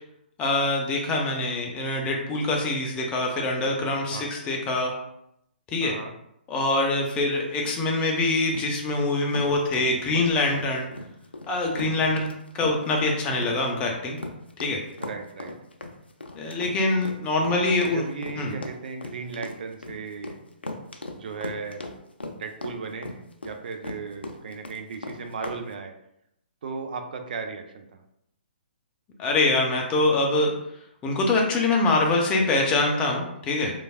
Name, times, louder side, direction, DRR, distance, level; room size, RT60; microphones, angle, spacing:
voice 1, 0.4-4.9 5.7-5.9 6.5-10.9 11.5-12.3 12.6-14.2 14.6-14.8 16.3-18.0 18.3-18.6 29.2-30.5 31.0-33.7, left 2 dB, 20° left, 0 dB, 0.5 m, -24 dB
voice 2, 5.8-6.1 11.9-12.1 15.0-15.5 17.4-20.4 21.1-21.8 22.3-23.1 23.4-25.9 26.6-28.0, right 5 dB, 55° right, 5 dB, 0.4 m, -36 dB
sound 1, 7.2-25.6, left 2 dB, 85° left, 0.4 m, -38 dB
3.2 x 2.3 x 2.4 m, 0.78 s
figure-of-eight pair, 125°, 6 cm